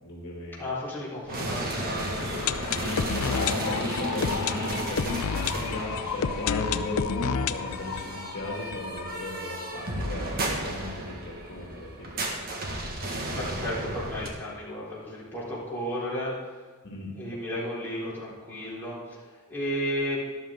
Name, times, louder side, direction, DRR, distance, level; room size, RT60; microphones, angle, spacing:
voice 1, 0.0-0.7 2.8-12.3 16.8-17.1, left 2 dB, 55° left, -3 dB, 2.4 m, -36 dB
voice 2, 0.6-2.6 13.4-16.3 17.1-19.0 19.5-20.2, equal, 10° left, -9 dB, 3.8 m, -33 dB
sound 1, 1.3-14.3, right 1 dB, 45° right, 1.6 m, -34 dB
sound 2, 2.0-9.7 10.0-10.1 10.3-10.4 10.9-11.0, left 6 dB, 75° left, 0.5 m, -31 dB
13.0 x 12.0 x 3.8 m, 1.4 s
head